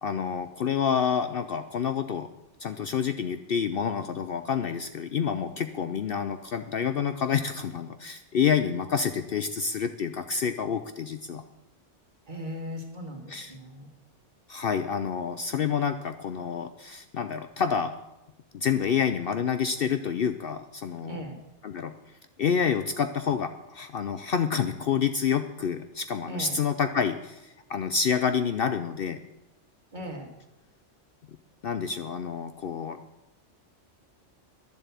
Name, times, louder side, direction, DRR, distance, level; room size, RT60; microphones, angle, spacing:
voice 1, 0.0-2.3 2.6-11.4 13.3-13.5 14.5-17.9 18.5-21.2 21.6-21.9 22.4-29.2 31.6-33.0, left 7 dB, 60° left, 9 dB, 0.7 m, -28 dB
voice 2, 12.3-13.9 21.0-21.4 26.3-26.6 29.9-30.3, equal, 40° right, 3 dB, 2.0 m, -38 dB
11.0 x 7.6 x 8.2 m, 0.93 s
omnidirectional pair, 1.3 m